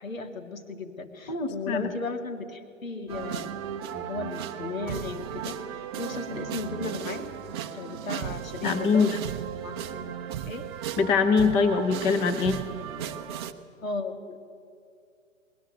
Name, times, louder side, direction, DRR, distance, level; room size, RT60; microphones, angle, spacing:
voice 1, 0.0-3.6 3.9-7.3 7.7-9.1 9.6-10.1 10.4-10.7 13.8-14.5, left 3 dB, 80° left, 6 dB, 2.5 m, -35 dB
voice 2, 1.3-1.8 8.6-9.2 11.0-12.6, left 5 dB, 15° left, 8 dB, 0.7 m, -23 dB
sound 1, 3.1-13.5, right 10 dB, 20° right, 0.6 m, -35 dB
19.5 x 19.0 x 9.2 m, 2.4 s
hypercardioid pair, 140°, 40 cm